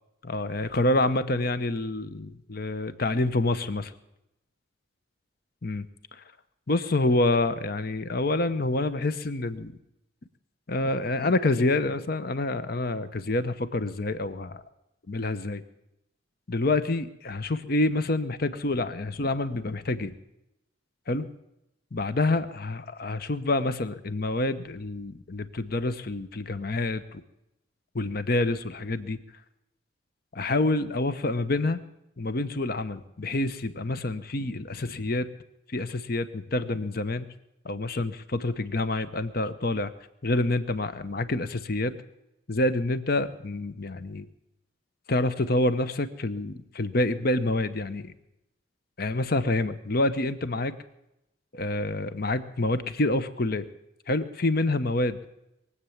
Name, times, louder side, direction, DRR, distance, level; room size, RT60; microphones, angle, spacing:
voice 1, 0.2-3.9 5.6-5.9 6.7-9.7 10.7-14.6 15.1-15.6 16.5-20.1 21.1-21.3 21.9-27.2 27.9-29.2 30.3-31.8 32.2-35.3 35.7-37.3 37.6-39.9 40.2-42.0 42.5-44.3 45.1-48.1 49.0-50.8 51.5-53.7 54.1-55.2, left 2 dB, 55° left, 12 dB, 0.9 m, -27 dB
22.0 x 8.2 x 7.2 m, 0.87 s
head